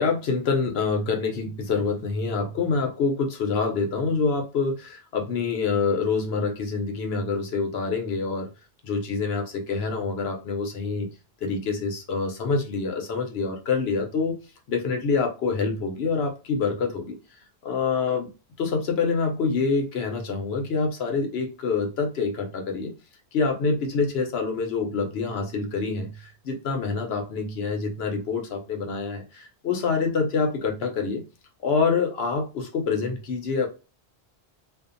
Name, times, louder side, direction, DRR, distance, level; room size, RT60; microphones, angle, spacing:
voice 1, 0.0-8.5 8.8-11.1 11.4-14.4 14.7-17.2 17.6-18.3 18.6-22.9 23.3-31.2 31.6-33.7, left 4 dB, 70° left, 3 dB, 0.9 m, -26 dB
2.6 x 2.4 x 2.4 m, 0.30 s
omnidirectional pair, 1.1 m